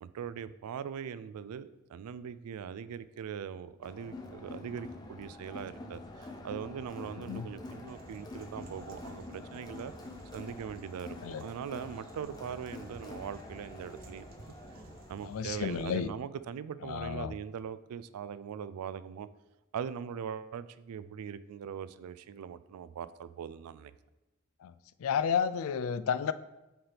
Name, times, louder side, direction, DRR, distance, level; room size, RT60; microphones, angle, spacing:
voice 1, 0.0-9.9 10.3-14.3 15.1-19.3 19.7-23.9, right 7 dB, 90° right, 15 dB, 0.3 m, -41 dB
Crowd, 3.8-15.4, left 2 dB, 20° left, 0.6 m, -46 dB
sound 1, 7.9-16.0, right 2 dB, 40° right, 0.5 m, -53 dB
voice 2, 15.2-16.1 16.8-17.3 24.6-24.7 25.0-26.3, left 7 dB, 70° left, 14 dB, 0.3 m, -31 dB
7.5 x 4.4 x 3.4 m, 1.0 s
head